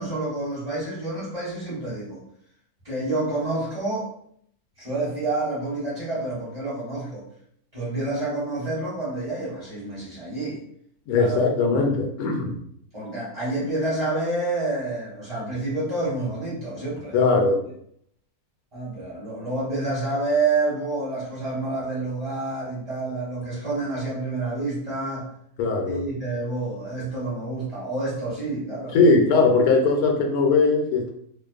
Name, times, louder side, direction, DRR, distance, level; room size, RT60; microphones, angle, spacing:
voice 1, 0.0-2.2 2.8-4.1 4.8-7.2 7.7-10.6 11.2-11.5 12.9-17.2 18.7-25.3 25.9-29.0, right 2 dB, 25° right, -9 dB, 1.0 m, -28 dB
voice 2, 11.1-12.6 17.1-17.6 25.6-26.0 28.9-31.1, left 3 dB, 80° left, 2 dB, 1.1 m, -20 dB
2.5 x 2.2 x 2.3 m, 0.67 s
omnidirectional pair, 1.6 m